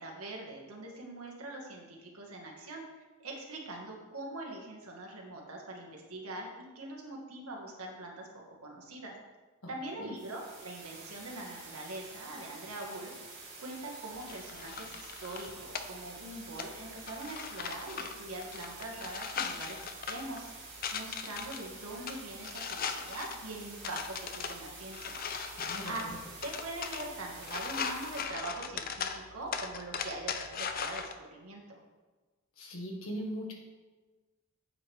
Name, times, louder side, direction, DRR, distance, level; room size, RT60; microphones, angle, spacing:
voice 1, 0.0-9.2 9.7-20.5 20.9-25.2 25.8-26.1 26.4-31.8, right 2 dB, 90° right, -1 dB, 1.8 m, -43 dB
sound 1, 10.1-28.2, right 3 dB, 55° right, 3.1 m, -49 dB
sound 2, 14.2-31.1, left 6 dB, 40° left, 0.5 m, -40 dB
voice 2, 25.6-26.2 32.6-33.5, equal, 75° left, 0 dB, 1.7 m, -40 dB
9.4 x 7.2 x 3.5 m, 1.3 s
head